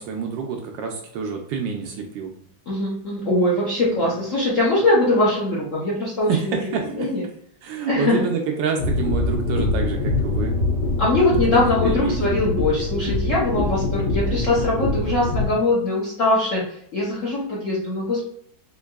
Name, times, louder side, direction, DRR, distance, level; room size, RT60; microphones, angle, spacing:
voice 1, 0.0-2.3 3.8-4.1 6.3-7.1 7.6-10.6 11.5-11.6 11.9-12.3, right 6 dB, 75° right, 2 dB, 1.1 m, -28 dB
voice 2, 2.7-7.2 7.9-8.2 11.0-18.2, left 2 dB, 60° left, -5 dB, 0.8 m, -22 dB
sound 1, 8.8-15.4, left 2 dB, 80° left, 2.1 m, -24 dB
4.5 x 2.6 x 2.3 m, 0.67 s
omnidirectional pair, 2.3 m